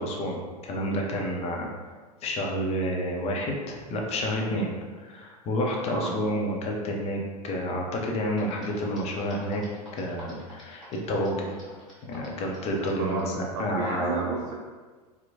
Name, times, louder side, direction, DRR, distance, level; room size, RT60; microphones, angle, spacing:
voice 1, 0.0-1.7 2.2-4.7 5.0-9.6 9.9-11.7 12.0-14.2, equal, 30° left, 0 dB, 0.5 m, -29 dB
voice 2, 5.8-6.2 13.0-14.5, right 3 dB, 50° right, -2 dB, 0.4 m, -32 dB
sound 1, 8.4-13.3, equal, ahead, 1.2 m, -48 dB
2.9 x 2.1 x 2.6 m, 1.4 s
hypercardioid pair, 90°, 20 cm